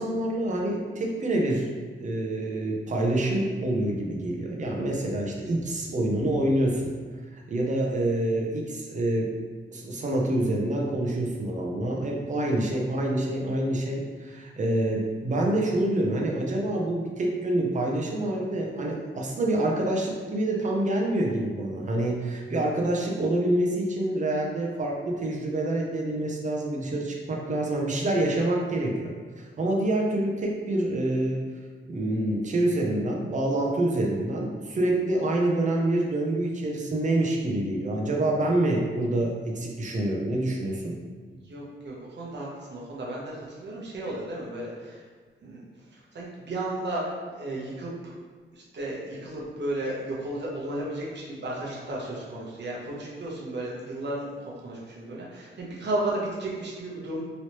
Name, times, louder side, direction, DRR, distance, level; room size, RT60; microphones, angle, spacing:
voice 1, 0.0-1.7 2.0-6.9 7.3-9.3 9.7-29.1 29.4-31.4 31.9-40.9, right 1 dB, 35° right, -1 dB, 0.5 m, -27 dB
voice 2, 41.3-45.0 45.4-45.6 45.9-48.2 48.5-57.2, right 1 dB, 60° right, -5 dB, 0.9 m, -34 dB
3.1 x 2.9 x 2.9 m, 1.6 s
wide cardioid pair, 145°, 21 cm